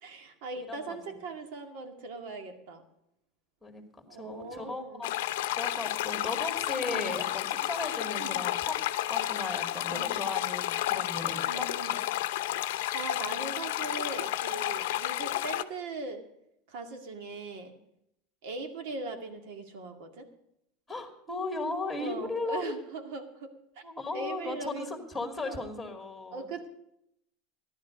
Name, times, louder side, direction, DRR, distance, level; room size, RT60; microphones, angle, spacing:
voice 1, 0.0-2.8 4.1-5.0 6.9-7.2 8.2-8.4 9.9-10.2 11.4-12.0 12.9-16.2 16.7-17.7 18.4-20.3 22.0-23.8 24.1-25.0 25.4-25.7 26.3-26.7, right 3 dB, 65° right, 5 dB, 2.2 m, -40 dB
voice 2, 0.6-1.2 3.6-5.1 5.6-8.8 9.1-11.7 20.9-22.7 23.8-26.5, left 3 dB, 5° left, 4 dB, 2.4 m, -36 dB
sound 1, 5.0-15.6, left 14 dB, 80° left, 0.6 m, -31 dB
14.5 x 11.5 x 5.1 m, 0.79 s
supercardioid pair, 140°, 0 cm